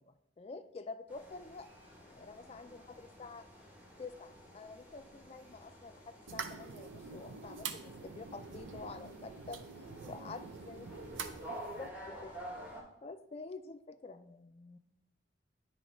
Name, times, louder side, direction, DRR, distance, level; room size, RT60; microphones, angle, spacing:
voice 1, 0.0-3.5 4.0-9.6 10.1-10.9 11.5-12.3 13.0-14.8, left 3 dB, 30° left, 9 dB, 0.3 m, -48 dB
sound 1, 1.1-12.8, equal, 10° right, 1.0 m, -51 dB
voice 2, 2.5-2.8 9.9-10.5 12.5-13.0, right 2 dB, 50° right, -2 dB, 0.9 m, -61 dB
sound 2, 6.3-11.9, right 6 dB, 85° right, 0.5 m, -45 dB
9.3 x 3.1 x 4.3 m, 0.87 s
head